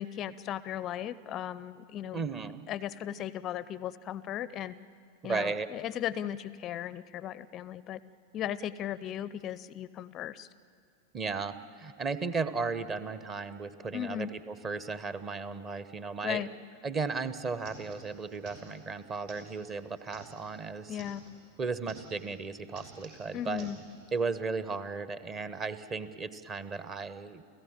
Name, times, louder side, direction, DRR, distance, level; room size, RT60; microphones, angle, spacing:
voice 1, 0.0-2.2 2.7-4.7 5.2-8.0 8.3-10.5 13.9-14.3 16.2-16.5 20.9-21.2 23.3-23.8, left 11 dB, 30° left, 18 dB, 0.5 m, -36 dB
voice 2, 2.1-2.7 5.2-5.7 11.1-16.4 16.8-21.0 21.6-23.7 24.1-27.4, right 4 dB, 25° right, 14 dB, 1.0 m, -35 dB
sound 1, 16.9-17.0 17.2-21.4 21.7-22.4 22.6-24.0, right 2 dB, 55° right, 6.2 m, -52 dB
30.0 x 15.5 x 8.9 m, 2.2 s
figure-of-eight pair, 90°, 0 cm